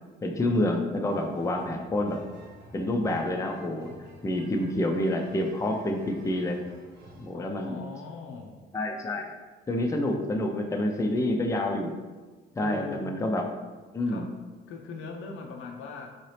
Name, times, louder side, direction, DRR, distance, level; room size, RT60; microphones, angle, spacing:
voice 1, 0.2-2.2 2.7-3.9 4.2-6.6 7.1-7.8 8.7-9.3 9.7-11.9 12.6-13.4 13.9-14.3, left 1 dB, 15° left, 2 dB, 0.5 m, -28 dB
sound 1, 1.1-7.4, right 2 dB, 60° right, 0.8 m, -50 dB
voice 2, 7.3-8.7 12.6-13.1 14.1-14.3 14.7-16.1, left 4 dB, 80° left, 2 dB, 0.6 m, -40 dB
3.8 x 2.7 x 3.3 m, 1.3 s
cardioid pair, 90°, 20 cm